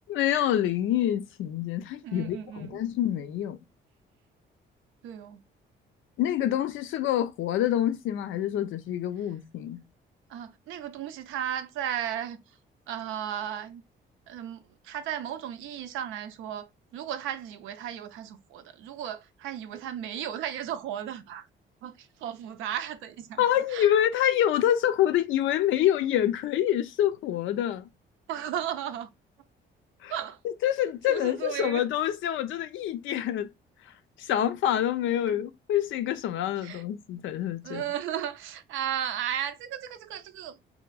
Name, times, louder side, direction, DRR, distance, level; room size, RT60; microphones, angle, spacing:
voice 1, 0.1-3.6 6.2-9.8 23.4-27.9 30.0-30.1 30.4-33.5 34.2-37.8, left 11 dB, 80° left, 0.4 m, -26 dB
voice 2, 2.0-2.8 5.0-5.4 10.3-12.4 12.9-13.8 14.3-21.5 21.8-23.4 23.7-23.9 28.3-29.1 30.1-30.4 31.1-31.8 35.3-35.4 36.6-36.8 37.6-40.6, right 10 dB, 90° right, 0.4 m, -35 dB
2.9 x 2.5 x 2.3 m
cardioid pair, 90°, 20 cm